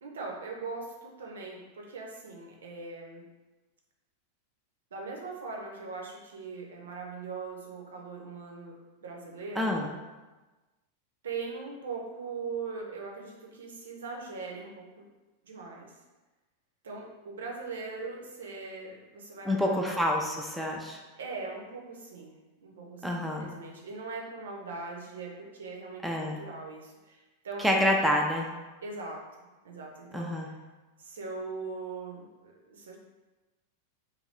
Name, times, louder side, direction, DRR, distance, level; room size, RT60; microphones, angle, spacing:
voice 1, 0.0-3.3 4.9-8.7 9.0-9.7 11.2-15.1 15.4-15.9 16.8-20.0 21.2-27.7 28.8-29.3 29.6-30.5 31.0-33.0, right 4 dB, 65° right, 0 dB, 0.5 m, -40 dB
voice 2, 9.6-9.9 19.5-21.0 23.0-23.5 26.0-26.4 27.6-28.5 30.1-30.5, left 1 dB, ahead, -1 dB, 0.4 m, -27 dB
2.6 x 2.5 x 3.2 m, 1.2 s
figure-of-eight pair, 90°, 0 cm